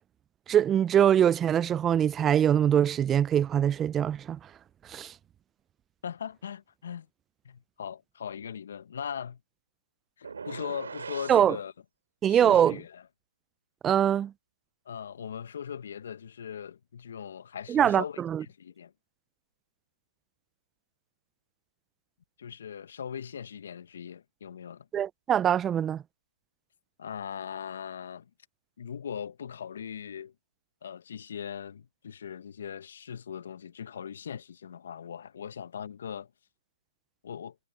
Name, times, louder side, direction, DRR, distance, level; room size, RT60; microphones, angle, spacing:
voice 1, 0.5-4.4 4.9-5.1 11.3-11.6 12.2-12.8 13.8-14.3 17.7-18.4 24.9-26.0, right 9 dB, 15° right, 0.3 m, -23 dB
voice 2, 6.0-7.1 7.4-9.4 10.2-11.7 12.3-13.0 14.8-18.9 22.4-24.9 27.0-28.3 28.8-30.3 30.8-36.3 37.2-37.6, left 8 dB, 60° left, 1.1 m, -39 dB
sound 1, 10.2-11.5, right 5 dB, 80° right, 2.6 m, -40 dB
hypercardioid pair, 150°, 0 cm